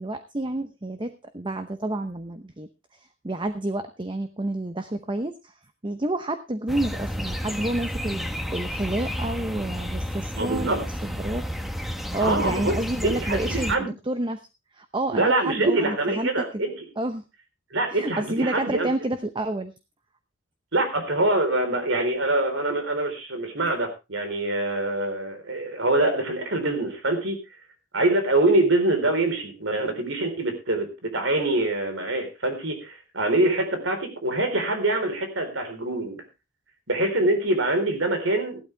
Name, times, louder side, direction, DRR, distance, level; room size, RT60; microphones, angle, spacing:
voice 1, 0.0-5.5 5.8-11.4 12.1-14.5 14.7-16.6 17.0-17.2 17.9-19.7, right 1 dB, 25° right, 9 dB, 0.8 m, -29 dB
sound 1, 6.7-13.8, equal, ahead, 1.1 m, -31 dB
voice 2, 10.3-10.8 12.2-12.8 13.0-13.9 15.1-16.8 17.7-18.9 20.7-27.4 27.9-36.2 36.9-38.6, right 2 dB, 70° right, 7 dB, 4.0 m, -24 dB
15.5 x 12.0 x 3.3 m, 0.27 s
head